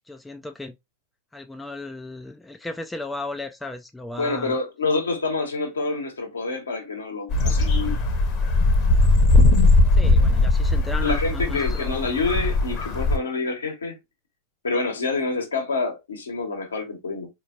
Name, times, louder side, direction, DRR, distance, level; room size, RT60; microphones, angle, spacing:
voice 1, 0.1-0.7 1.3-4.6 10.0-12.1, left 2 dB, 5° left, 0.4 m, -35 dB
voice 2, 4.2-8.0 11.0-14.0 14.6-17.3, left 3 dB, 70° left, 1.1 m, -27 dB
sound 1, 7.3-13.2, left 2 dB, 35° left, 1.0 m, -19 dB
4.2 x 2.8 x 2.4 m
figure-of-eight pair, 90°, 0 cm